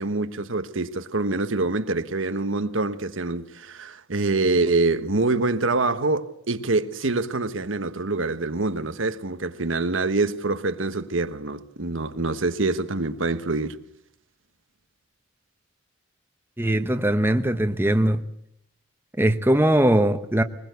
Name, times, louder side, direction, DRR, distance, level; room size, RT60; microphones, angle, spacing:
voice 1, 0.0-13.8, right 3 dB, 70° right, 1.3 m, -25 dB
voice 2, 16.6-18.2 19.2-20.4, right 1 dB, 10° right, 1.0 m, -20 dB
23.0 x 20.5 x 8.0 m
head